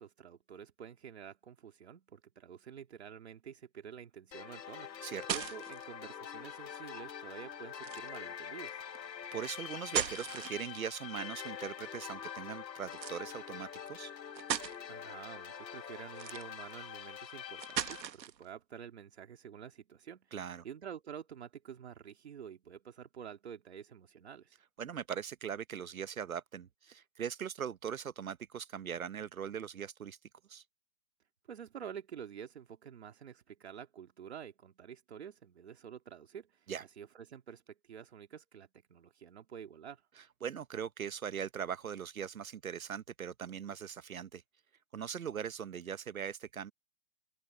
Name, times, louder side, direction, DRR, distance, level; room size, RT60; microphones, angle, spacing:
voice 1, 0.0-8.8 14.9-20.3 20.6-24.6 31.5-40.1, right 8 dB, 40° right, 2.3 m, -49 dB
sound 1, 4.3-18.0, left 8 dB, 85° left, 1.8 m, -45 dB
sound 2, 4.8-5.8 7.8-8.2 9.7-11.0 12.9-13.2 13.9-14.0 14.3-14.8 16.1-16.7 17.6-18.4, right 9 dB, 90° right, 1.5 m, -37 dB
voice 2, 9.3-14.1 20.3-20.6 24.8-30.2 30.5-30.6 36.7-36.8 40.4-44.4 44.9-46.7, right 8 dB, 55° right, 1.1 m, -40 dB
open air
hypercardioid pair, 180°, 50 cm